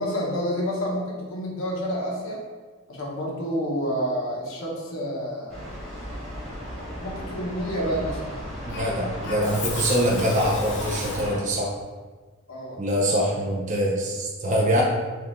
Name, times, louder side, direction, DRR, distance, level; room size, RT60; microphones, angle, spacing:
voice 1, 0.0-2.4 2.9-5.6 6.7-8.3 12.5-12.8 13.3-13.4, equal, 75° left, -3 dB, 1.0 m, -29 dB
sound 1, 5.5-11.4, equal, ahead, 1.3 m, -35 dB
voice 2, 8.6-11.7 12.8-14.8, equal, 35° right, -2 dB, 0.5 m, -24 dB
Cough, 8.7-11.6, left 3 dB, 55° left, 0.6 m, -35 dB
4.6 x 2.5 x 3.5 m, 1.4 s
head